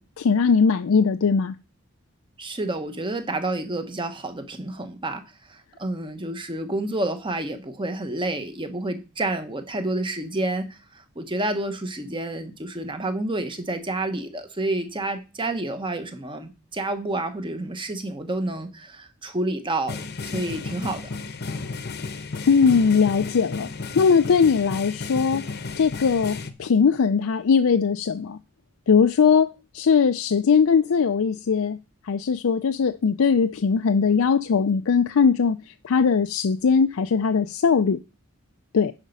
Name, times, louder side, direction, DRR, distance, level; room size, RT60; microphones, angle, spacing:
voice 1, 0.0-1.5 22.0-22.1 22.5-23.7 24.0-25.5 25.8-28.4 28.9-31.8 32.0-38.0 38.7-38.9, left 5 dB, 70° left, 0.4 m, -20 dB
voice 2, 2.4-5.2 5.5-10.8 11.2-21.0, right 2 dB, 25° right, 1.1 m, -29 dB
sound 1, 19.9-26.5, left 4 dB, 50° left, 0.9 m, -33 dB
10.0 x 5.2 x 5.3 m
head